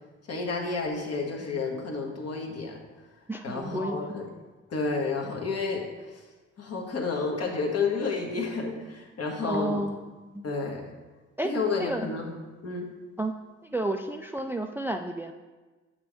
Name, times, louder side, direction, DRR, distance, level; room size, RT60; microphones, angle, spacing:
voice 1, 0.3-2.8 3.4-4.3 4.7-6.2 6.6-9.8 10.4-10.8 11.4-12.3 12.6-12.9, left 4 dB, 55° left, 0 dB, 1.5 m, -30 dB
voice 2, 3.3-3.9 9.4-10.4 11.4-11.5 11.8-12.1 13.2-13.3 13.6-15.3, right 1 dB, 5° right, 5 dB, 0.3 m, -31 dB
7.5 x 5.9 x 3.5 m, 1.3 s
cardioid pair, 90°, 30 cm